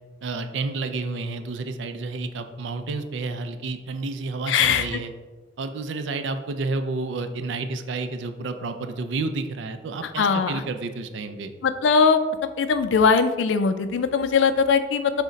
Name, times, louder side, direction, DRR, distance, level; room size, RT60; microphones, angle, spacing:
voice 1, 0.2-5.1 5.6-11.5, right 3 dB, 80° right, 8 dB, 0.4 m, -30 dB
voice 2, 4.5-5.0 10.2-10.5 11.6-12.2 12.6-15.1, left 5 dB, 85° left, 10 dB, 0.4 m, -20 dB
6.2 x 2.1 x 3.9 m, 1.3 s
head